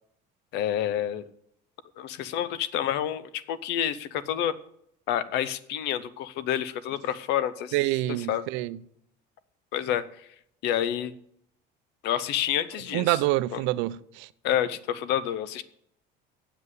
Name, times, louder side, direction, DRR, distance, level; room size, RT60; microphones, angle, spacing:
voice 1, 0.5-1.3 2.0-4.5 5.1-7.7 8.3-8.4 9.7-10.0 10.6-11.1 12.0-13.2 13.5-13.6 14.4-15.6, left 10 dB, 65° left, 0.7 m, -28 dB
voice 2, 7.7-8.8 12.9-14.3, right 17 dB, 80° right, 0.5 m, -26 dB
8.1 x 7.6 x 8.1 m
cardioid pair, 165°, 19 cm